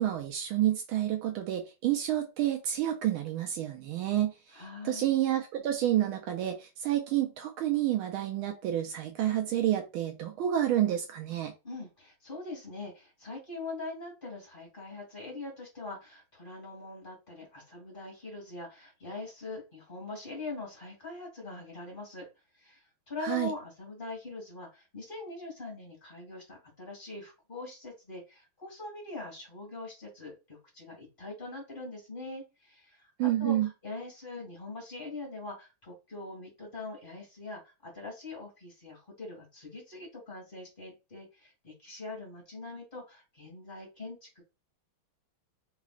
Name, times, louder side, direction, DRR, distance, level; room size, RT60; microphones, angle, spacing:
voice 1, 0.0-4.3 4.8-11.5 23.2-23.5 33.2-33.7, right 12 dB, 80° right, 4 dB, 1.4 m, -29 dB
voice 2, 4.5-5.2 11.6-22.3 22.5-44.4, left 2 dB, 25° left, -2 dB, 1.8 m, -43 dB
3.9 x 3.0 x 2.4 m, 0.27 s
omnidirectional pair, 2.3 m